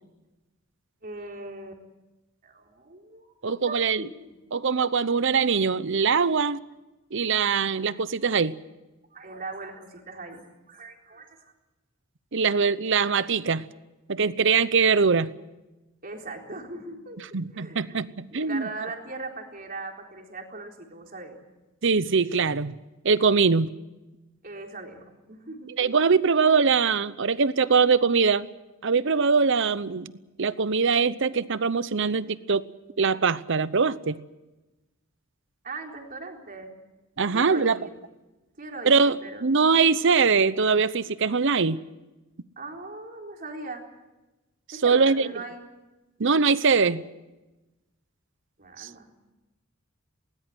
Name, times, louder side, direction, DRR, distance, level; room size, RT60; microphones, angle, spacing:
voice 1, 1.0-1.8 2.4-3.3 3.7-4.4 9.1-11.4 16.0-17.2 17.5-18.0 18.3-21.4 24.4-26.0 35.6-36.7 37.3-38.0 38.6-39.5 42.6-43.8 44.7-45.7 48.6-49.1, right 3 dB, 45° right, 2 dB, 3.9 m, -39 dB
voice 2, 3.4-4.0 4.5-6.6 7.1-8.6 12.3-13.6 14.1-15.3 17.3-18.7 21.8-22.7 23.0-23.7 25.8-28.5 28.8-30.1 30.4-32.7 33.0-34.2 37.2-37.8 38.8-41.8 44.8-45.3 46.2-47.0 48.8-48.9, right 5 dB, 65° right, 16 dB, 0.8 m, -22 dB
20.0 x 19.0 x 9.3 m, 1.1 s
head